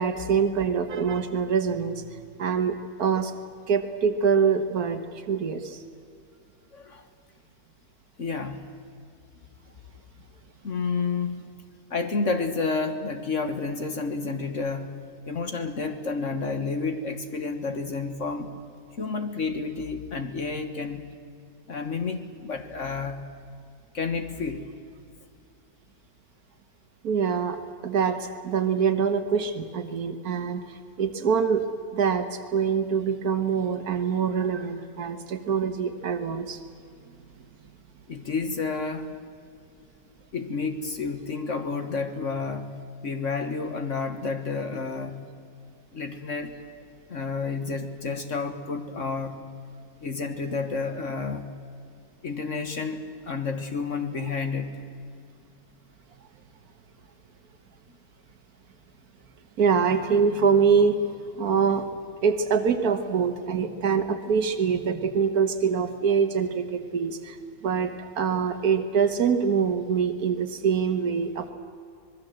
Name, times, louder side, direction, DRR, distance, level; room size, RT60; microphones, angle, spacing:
voice 1, 0.0-3.3 3.7-5.8 27.0-31.6 31.9-36.6 59.6-61.9 62.2-67.4 67.6-71.5, right 6 dB, 90° right, 7 dB, 1.8 m, -25 dB
voice 2, 6.7-7.1 8.2-8.6 10.6-11.5 11.9-14.9 15.2-18.5 19.0-21.1 21.7-23.2 23.9-24.6 38.1-39.1 40.3-42.7 43.0-45.2 45.9-46.5 47.1-49.4 50.0-51.5 52.2-53.0 53.3-54.7, left 4 dB, 55° left, 7 dB, 1.7 m, -30 dB
26.0 x 20.0 x 7.8 m, 2.3 s
omnidirectional pair, 1.5 m